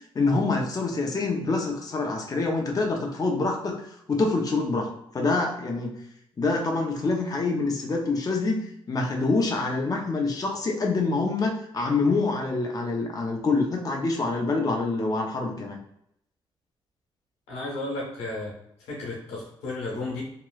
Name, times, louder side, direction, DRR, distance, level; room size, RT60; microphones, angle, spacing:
voice 1, 0.1-5.9 6.4-8.6 8.9-15.8, left 3 dB, 35° left, 0 dB, 0.7 m, -26 dB
voice 2, 17.5-18.5 18.9-20.2, left 2 dB, 90° left, -3 dB, 1.1 m, -33 dB
2.9 x 2.9 x 2.3 m, 0.76 s
supercardioid pair, 65°, 11 cm